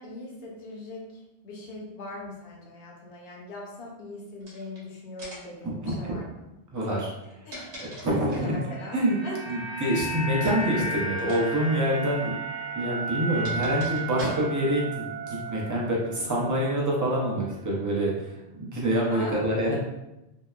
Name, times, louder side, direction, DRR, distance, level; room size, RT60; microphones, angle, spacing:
voice 1, 0.0-6.4 7.5-7.7 8.3-9.4 13.3-13.6 19.1-19.8, left 2 dB, 70° left, -2 dB, 0.9 m, -40 dB
sound 1, 4.4-4.8 5.2-5.6 7.1-8.6 10.4-10.7 11.2-11.4 11.7-11.8 12.8-14.7, right 1 dB, 60° right, 0.9 m, -42 dB
voice 2, 5.6-6.2 6.7-7.1 7.8-8.5 8.9-9.2 9.5-12.3 12.7-18.1 18.5-19.7, right 1 dB, 30° right, -4 dB, 0.3 m, -26 dB
sound 2, 8.4-16.7 17.0-17.2, right 2 dB, 35° left, 0.6 m, -34 dB
2.8 x 2.0 x 2.3 m, 0.94 s
omnidirectional pair, 1.0 m